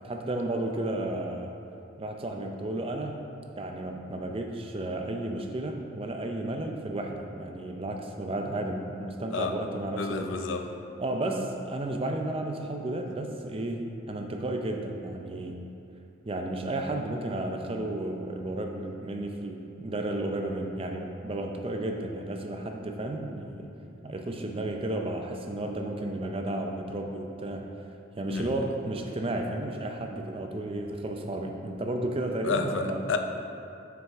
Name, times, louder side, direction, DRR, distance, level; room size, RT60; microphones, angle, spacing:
voice 1, 0.0-1.5 2.0-3.2 3.6-10.3 11.0-15.5 16.3-23.7 24.0-27.6 28.2-33.0, right 1 dB, 30° right, 3 dB, 0.5 m, -33 dB
voice 2, 10.0-10.6 28.3-28.6 32.4-33.2, left 4 dB, 80° left, 5 dB, 0.5 m, -30 dB
7.3 x 6.0 x 3.5 m, 2.7 s
head